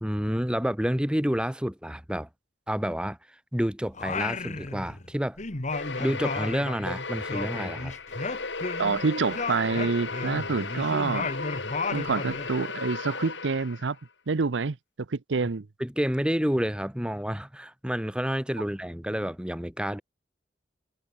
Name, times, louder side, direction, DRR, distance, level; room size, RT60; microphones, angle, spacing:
voice 1, 0.0-2.3 2.7-3.2 3.5-5.4 6.0-7.9 15.8-20.0, equal, 5° right, 1.2 m, -29 dB
Singing, 3.9-5.1 5.4-9.0 9.3-12.5, left 3 dB, 40° left, 1.7 m, -33 dB
sound 1, 5.7-14.0, left 4 dB, 80° left, 4.8 m, -36 dB
voice 2, 8.8-11.3 11.9-14.0 14.3-14.8 15.1-15.7, right 4 dB, 80° right, 0.7 m, -27 dB
head